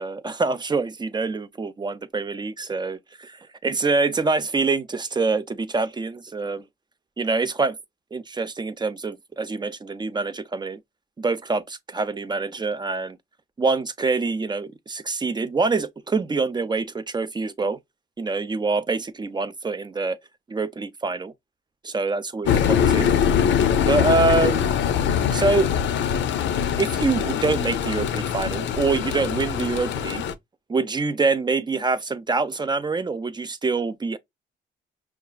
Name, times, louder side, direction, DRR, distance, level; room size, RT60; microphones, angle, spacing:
voice 1, 0.0-6.6 7.2-7.8 8.1-10.8 11.2-13.2 13.6-17.8 18.2-20.2 20.5-21.3 21.8-23.1 23.9-24.7 25.3-25.7 26.8-30.3 30.7-34.2, right 3 dB, 20° right, 0.5 m, -25 dB
sound 1, 22.5-30.3, left 8 dB, 70° left, 0.5 m, -23 dB
5.8 x 2.4 x 2.2 m
cardioid pair, 90°, 20 cm